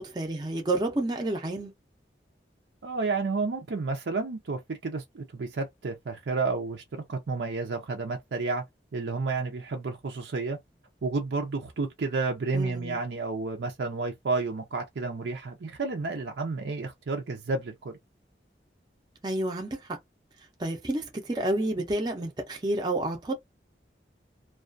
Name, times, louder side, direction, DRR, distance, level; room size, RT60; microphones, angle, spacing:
voice 1, 0.0-1.7 12.5-13.0 19.2-20.0 20.6-23.3, right 1 dB, 25° right, 0.5 m, -30 dB
voice 2, 2.8-8.6 8.9-10.6 11.0-17.9, right 3 dB, 85° right, 0.5 m, -31 dB
2.3 x 2.2 x 2.5 m
head